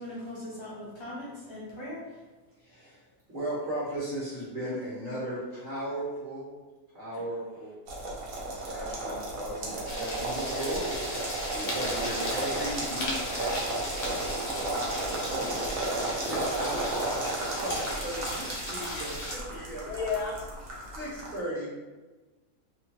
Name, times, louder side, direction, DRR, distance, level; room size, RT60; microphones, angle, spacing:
voice 1, 0.0-2.3, left 1 dB, 25° left, -8 dB, 0.7 m, -40 dB
voice 2, 2.6-3.0 3.3-6.5 6.9-7.7 8.5-11.3 11.5-13.6 14.5-14.8 15.0-17.3 17.6-19.9 20.9-21.7, right 1 dB, 35° right, -8 dB, 1.0 m, -36 dB
sound 1, 7.9-21.4, right 2 dB, 65° right, 1.0 m, -34 dB
sound 2, 9.9-19.4, left 1 dB, 60° left, 0.9 m, -37 dB
voice 3, 19.5-21.0, left 5 dB, 80° left, -1 dB, 1.2 m, -35 dB
2.9 x 2.2 x 2.9 m, 1.2 s
omnidirectional pair, 1.7 m